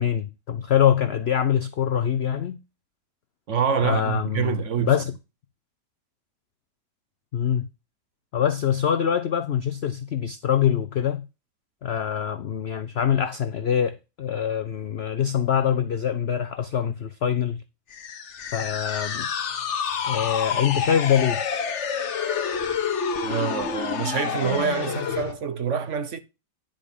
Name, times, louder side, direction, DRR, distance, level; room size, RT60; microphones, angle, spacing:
voice 1, 0.0-2.6 3.8-5.1 7.3-7.7 8.3-11.3 11.8-17.6 18.5-19.3 20.0-21.4, left 9 dB, 75° left, 0.5 m, -24 dB
voice 2, 3.5-5.0 23.2-26.2, right 7 dB, 55° right, 0.9 m, -26 dB
sound 1, 17.9-25.3, left 7 dB, 50° left, 1.1 m, -28 dB
10.5 x 5.2 x 5.4 m
omnidirectional pair, 1.8 m